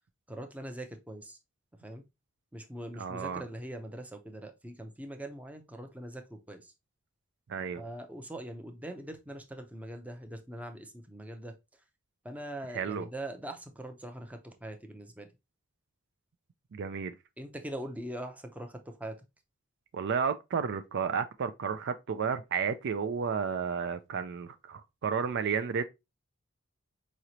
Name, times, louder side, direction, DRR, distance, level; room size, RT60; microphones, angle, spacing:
voice 1, 0.3-1.4 1.8-2.0 2.5-6.7 7.8-11.5 12.2-15.3 17.4-19.2, right 1 dB, 5° right, 0.6 m, -42 dB
voice 2, 3.0-3.4 7.5-7.8 12.7-13.1 16.7-17.1 19.9-25.8, right 6 dB, 60° right, 0.4 m, -32 dB
4.9 x 3.1 x 2.7 m
head